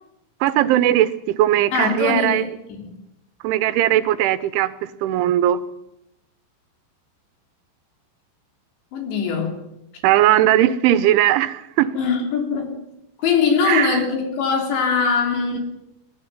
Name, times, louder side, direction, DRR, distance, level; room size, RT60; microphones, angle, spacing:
voice 1, 0.4-2.5 3.4-5.6 10.0-11.9 13.6-14.0, right 13 dB, 80° right, 3.2 m, -18 dB
voice 2, 1.7-2.4 2.7-2.9 8.9-9.6 12.0-12.8 13.2-15.6, left 5 dB, 65° left, 5.4 m, -21 dB
23.0 x 13.5 x 9.6 m
omnidirectional pair, 5.5 m